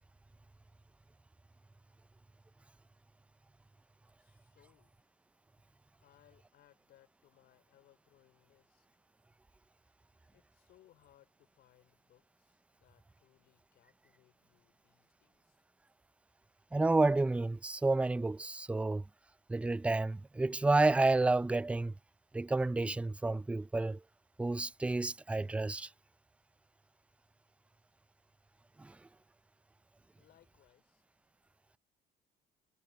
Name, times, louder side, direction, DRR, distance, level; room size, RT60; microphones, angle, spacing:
voice 1, 4.2-5.1 6.0-8.9 10.3-15.6 30.2-31.0, left 13 dB, 75° left, 5.0 m, -68 dB
voice 2, 16.7-19.0 19.5-21.9 22.3-24.0 24.4-25.9 28.8-29.0, right 2 dB, 5° right, 0.4 m, -30 dB
cardioid pair, 110°, 17 cm